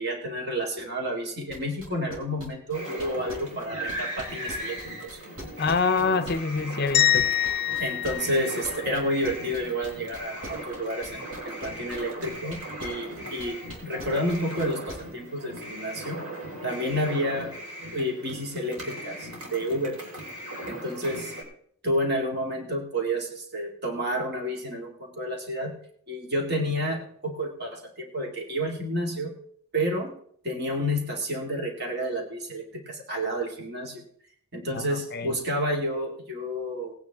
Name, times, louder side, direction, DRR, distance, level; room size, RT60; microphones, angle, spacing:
voice 1, 0.0-5.2 7.8-11.2 11.4-16.2 16.6-17.5 17.9-20.0 20.7-21.3 21.8-25.8 26.1-29.3 29.7-30.1 30.4-34.0 34.5-36.9, equal, 50° right, 2.3 m, -30 dB
sound 1, 1.5-6.6 6.9-13.1 13.4-15.0, equal, 65° right, 3.8 m, -41 dB
sound 2, 2.7-21.4, right 1 dB, 90° right, 4.1 m, -38 dB
voice 2, 5.6-7.3 34.7-35.4, left 4 dB, 45° left, 0.6 m, -26 dB
sound 3, 6.9-9.2, left 11 dB, 25° left, 1.6 m, -25 dB
19.0 x 9.4 x 3.6 m
head